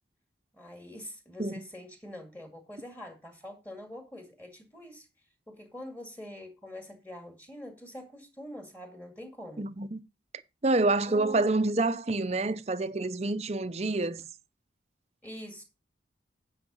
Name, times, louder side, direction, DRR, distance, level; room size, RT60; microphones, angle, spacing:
voice 1, 0.5-5.1 5.5-9.7 10.9-11.4 15.2-15.6, left 1 dB, 10° left, 2.1 m, -45 dB
voice 2, 9.6-10.0 10.6-14.2, right 2 dB, 35° right, 0.6 m, -27 dB
9.8 x 5.9 x 5.3 m
head